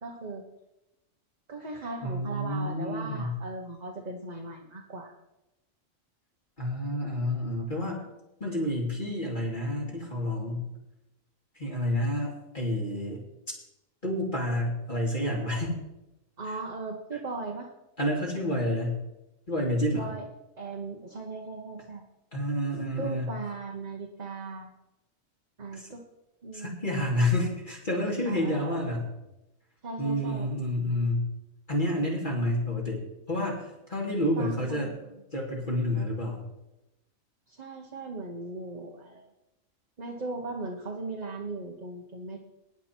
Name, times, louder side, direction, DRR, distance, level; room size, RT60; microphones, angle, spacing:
voice 1, 0.0-0.4 1.5-5.1 16.4-17.7 19.9-20.2 20.6-22.0 23.0-24.7 25.6-26.0 26.4-26.8 28.3-28.8 29.8-30.5 34.4-34.9 37.5-39.2 40.0-42.4, right 3 dB, 35° right, 0 dB, 1.3 m, -38 dB
voice 2, 2.0-3.3 6.6-8.1 8.4-10.7 11.5-13.2 14.0-15.8 16.4-16.5 17.1-17.2 18.0-19.0 19.5-20.1 22.3-23.3 25.7-25.9 26.5-29.1 30.0-31.3 31.7-33.0 33.3-34.9 35.3-36.5, left 1 dB, 35° left, -4 dB, 2.8 m, -29 dB
16.0 x 9.8 x 4.5 m, 0.95 s
omnidirectional pair, 1.4 m